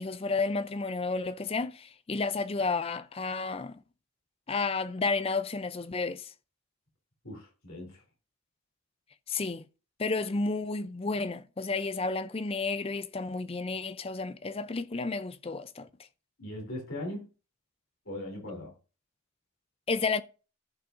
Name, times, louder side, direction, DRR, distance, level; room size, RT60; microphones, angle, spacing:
voice 1, 0.0-3.8 4.5-6.3 9.3-9.6 10.0-15.9 19.9-20.2, left 3 dB, 25° left, 0.4 m, -31 dB
voice 2, 7.2-8.0 16.4-17.3 18.1-18.7, left 1 dB, 60° left, 3.5 m, -39 dB
14.5 x 5.6 x 2.6 m
head